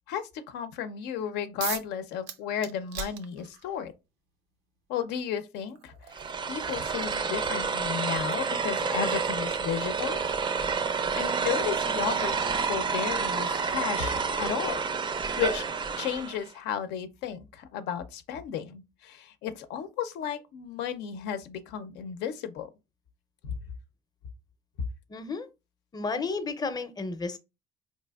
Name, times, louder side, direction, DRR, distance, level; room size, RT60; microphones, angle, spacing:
voice 1, 0.1-3.9 4.9-5.9 6.5-10.2 11.2-14.8 15.4-15.7 16.0-22.7 23.4-23.5 24.8-24.9, left 8 dB, 85° left, 0.6 m, -33 dB
sound 1, 1.6-1.9 2.3-3.8 4.9-5.0 5.5-12.2, right 8 dB, 85° right, 0.5 m, -43 dB
sound 2, 6.1-16.4, right 5 dB, 30° right, 0.4 m, -29 dB
voice 2, 25.1-25.5 25.9-27.4, left 4 dB, 25° left, 0.6 m, -32 dB
4.1 x 3.0 x 2.3 m
cardioid pair, 110°, 17 cm